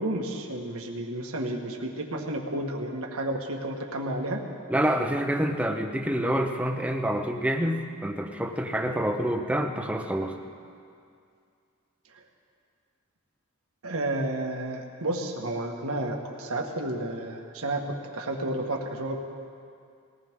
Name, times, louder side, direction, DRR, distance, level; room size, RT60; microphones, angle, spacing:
voice 1, 0.0-4.4 8.8-9.0 12.1-12.2 13.8-19.2, right 1 dB, 85° right, 1 dB, 1.7 m, -31 dB
voice 2, 4.7-10.4, right 1 dB, 5° right, 3 dB, 0.8 m, -27 dB
20.5 x 18.0 x 3.7 m, 2.4 s
head